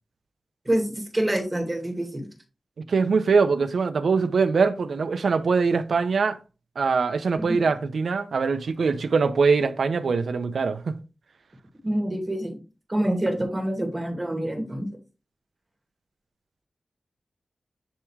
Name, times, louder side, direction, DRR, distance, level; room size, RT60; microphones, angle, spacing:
voice 1, 0.6-2.3 7.5-7.6 11.8-12.6 12.9-14.9, right 1 dB, 20° right, 2.2 m, -26 dB
voice 2, 2.9-6.4 6.8-10.9, right 4 dB, 85° right, 0.7 m, -22 dB
10.5 x 3.6 x 3.3 m
wide cardioid pair, 90°, 0 cm